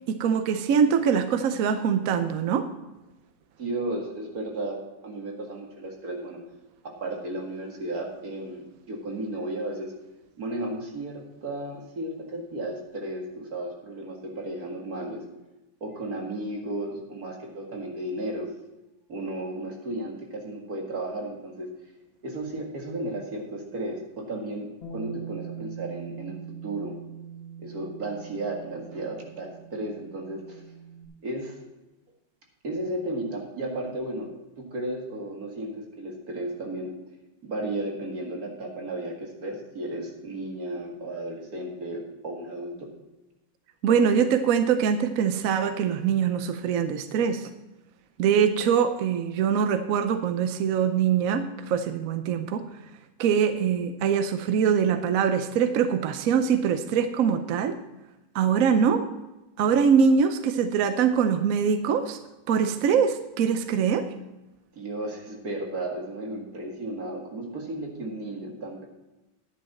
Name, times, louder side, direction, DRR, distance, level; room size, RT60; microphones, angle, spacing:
voice 1, 0.1-2.7 43.8-47.5 48.2-52.6 53.2-57.8 58.3-59.0 59.6-62.2 62.5-64.0, right 7 dB, 70° right, 9 dB, 0.8 m, -23 dB
voice 2, 3.6-4.8 5.0-6.4 6.8-10.0 10.4-15.3 15.8-18.5 19.1-21.7 22.2-26.4 26.6-26.9 27.6-30.6 31.2-31.6 32.6-37.0 37.4-42.9 64.8-68.8, right 1 dB, 50° right, 1 dB, 2.3 m, -34 dB
Bass guitar, 24.8-31.1, right 7 dB, 35° left, 1.6 m, -42 dB
11.0 x 9.7 x 4.2 m, 1.0 s
omnidirectional pair, 2.1 m